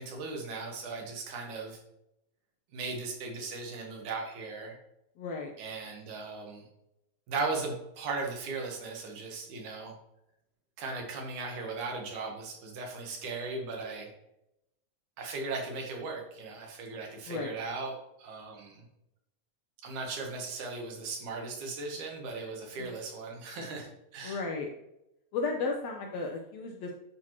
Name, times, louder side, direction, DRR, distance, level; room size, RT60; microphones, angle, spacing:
voice 1, 0.0-1.8 2.7-4.8 5.6-6.6 7.3-9.9 10.8-14.1 15.2-18.8 19.8-24.4, right 3 dB, 80° right, 1 dB, 2.8 m, -37 dB
voice 2, 5.2-5.5 17.3-17.5 22.8-22.9 24.2-24.7 25.3-26.9, left 4 dB, 75° left, 1 dB, 1.8 m, -34 dB
9.9 x 4.5 x 3.0 m, 0.85 s
omnidirectional pair, 3.4 m